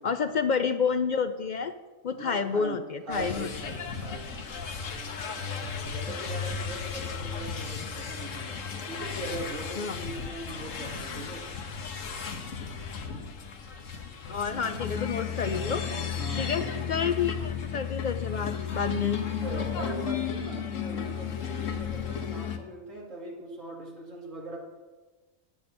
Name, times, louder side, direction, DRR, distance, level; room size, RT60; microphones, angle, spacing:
voice 1, 0.0-1.7 2.0-3.5 9.8-10.0 14.3-15.8 16.4-16.6 16.9-19.2, left 6 dB, 60° left, 10 dB, 0.5 m, -29 dB
voice 2, 2.2-5.1 5.7-11.5 14.6-14.9 16.2-16.7 19.1-24.6, right 2 dB, 75° right, -2 dB, 2.8 m, -41 dB
sound 1, 3.1-22.6, left 7 dB, 75° left, 1.4 m, -34 dB
12.5 x 9.7 x 4.4 m, 1.2 s
omnidirectional pair, 1.3 m